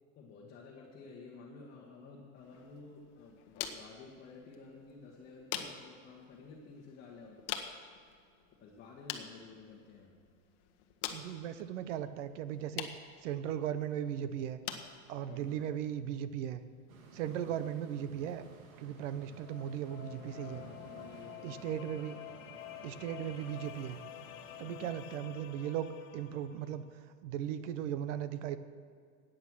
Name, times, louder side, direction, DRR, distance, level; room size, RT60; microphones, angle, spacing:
voice 1, 0.1-7.6 8.6-10.2 15.3-15.7 17.2-17.6 20.2-21.9 24.6-25.0, left 4 dB, 25° left, -2 dB, 1.5 m, -53 dB
sound 1, 2.4-17.4, left 9 dB, 45° left, 1.1 m, -47 dB
voice 2, 11.1-12.9 13.2-14.6 15.1-16.6 17.1-18.4 18.8-20.6 21.4-22.2 22.8-24.0 24.6-25.9 26.1-26.8 27.2-28.6, right 10 dB, 60° right, 13 dB, 0.9 m, -37 dB
sound 2, 16.9-24.7, right 4 dB, 80° right, 2.3 m, -55 dB
sound 3, 19.0-26.8, left 13 dB, 70° left, 1.2 m, -50 dB
14.0 x 9.1 x 6.3 m, 2.2 s
supercardioid pair, 165°, 41 cm